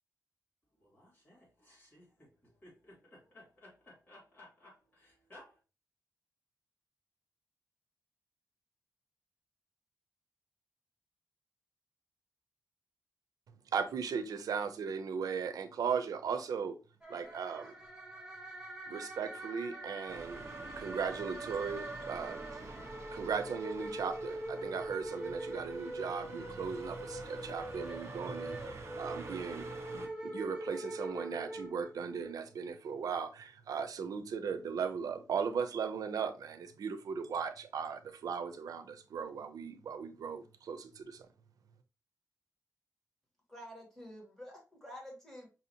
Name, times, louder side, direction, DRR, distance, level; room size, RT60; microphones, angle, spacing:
voice 1, 0.8-5.6, left 1 dB, 35° left, 2.4 m, -58 dB
voice 2, 13.7-16.8 17.1-17.7 18.9-20.4 20.8-22.6 23.1-29.7 29.9-41.3, right 6 dB, 85° right, 0.5 m, -37 dB
sound 1, 17.0-32.3, right 1 dB, 10° right, 0.9 m, -43 dB
sound 2, 20.1-30.1, right 3 dB, 50° right, 0.7 m, -49 dB
voice 3, 43.5-45.5, equal, 5° left, 1.6 m, -49 dB
5.6 x 2.8 x 2.7 m
wide cardioid pair, 180°, 6 cm